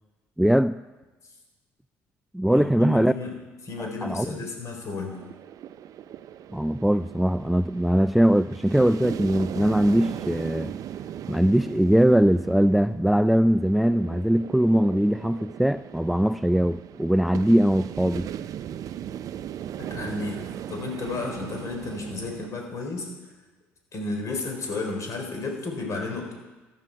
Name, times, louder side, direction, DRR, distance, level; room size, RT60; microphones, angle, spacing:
voice 1, 0.4-0.7 2.3-3.1 3.8-4.3 6.5-10.7 11.3-18.3, equal, ahead, 14 dB, 0.3 m, -21 dB
voice 2, 2.5-5.2 19.8-20.4 20.7-23.1 23.9-26.3, left 3 dB, 50° left, 2 dB, 4.0 m, -33 dB
sound 1, 5.1-22.5, right 10 dB, 60° right, 0.5 m, -38 dB
15.0 x 10.5 x 4.6 m, 1.2 s
hypercardioid pair, 60°, 7 cm